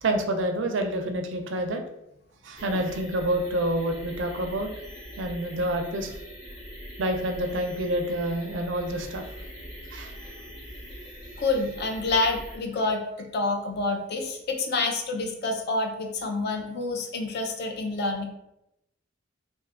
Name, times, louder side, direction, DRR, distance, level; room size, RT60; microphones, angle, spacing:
voice 1, 0.0-1.8 2.4-4.7 5.2-6.1 7.0-9.2 9.9-10.1, right 1 dB, 80° right, 5 dB, 0.5 m, -28 dB
sound 1, 2.6-12.6, equal, 20° left, 0.9 m, -42 dB
voice 2, 11.4-18.2, left 3 dB, 60° left, 4 dB, 0.5 m, -28 dB
2.6 x 2.3 x 3.4 m, 0.87 s
head